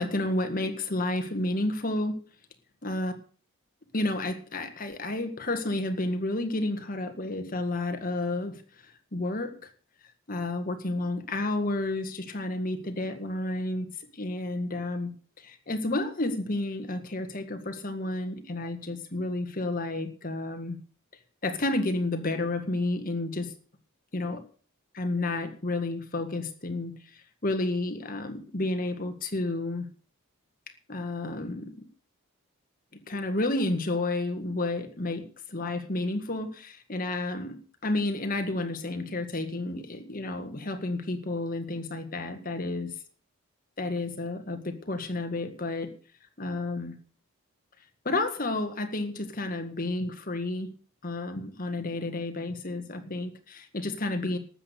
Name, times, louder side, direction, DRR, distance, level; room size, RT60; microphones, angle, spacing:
voice 1, 0.0-2.2 2.8-3.1 3.9-8.6 9.1-9.5 10.3-13.9 14.1-15.1 15.4-20.8 21.4-23.5 24.1-24.4 24.9-26.9 27.4-29.9 30.9-31.7 33.1-42.9 43.8-45.9 46.4-46.9 48.1-50.7 51.0-54.4, left 2 dB, 40° left, 7 dB, 1.7 m, -31 dB
13.0 x 8.3 x 6.8 m, 0.42 s
head